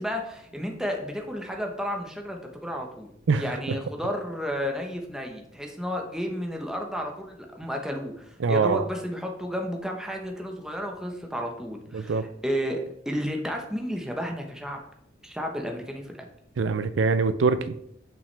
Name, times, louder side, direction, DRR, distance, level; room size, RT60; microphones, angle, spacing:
voice 1, 0.0-3.1 3.4-14.8 15.2-16.3, equal, 5° right, 2 dB, 0.9 m, -32 dB
voice 2, 3.3-3.8 8.4-8.8 11.9-12.2 16.6-17.7, right 4 dB, 90° right, 12 dB, 0.5 m, -24 dB
6.9 x 5.9 x 3.3 m, 0.73 s
head